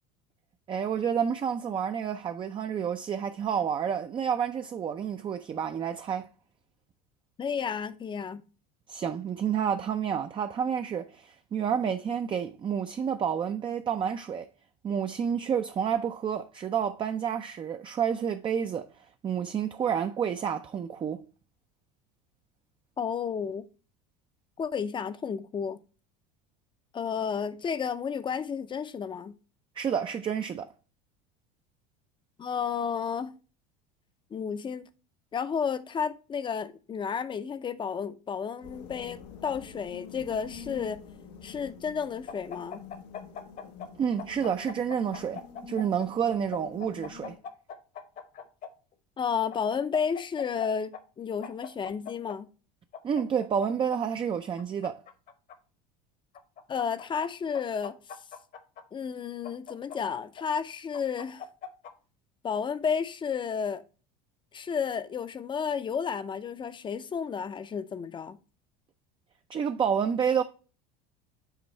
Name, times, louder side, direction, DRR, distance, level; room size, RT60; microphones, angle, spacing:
voice 1, 0.7-6.3 8.9-14.5 14.8-18.9 19.2-21.2 29.8-30.7 44.0-47.4 53.0-55.0 69.5-70.4, right 7 dB, 25° right, 0.4 m, -29 dB
voice 2, 7.4-8.4 23.0-23.7 24.6-25.8 26.9-29.4 32.4-33.3 34.3-34.9 35.3-41.0 41.4-42.8 49.2-52.5 56.7-58.0 58.9-61.5 62.4-63.8 64.5-68.4, left 6 dB, 25° left, 0.5 m, -32 dB
sound 1, 38.6-47.4, left 7 dB, 80° left, 0.9 m, -47 dB
sound 2, 42.3-43.9 44.2-46.1 46.5-48.7 49.5-50.7 50.9-51.0 51.4-52.4 52.9-54.0 54.6-55.6 56.3-57.3 57.5-58.8 59.4-60.4 60.9-61.9, left 6 dB, 45° left, 1.0 m, -41 dB
8.0 x 3.0 x 4.4 m
supercardioid pair, 100°, 20 cm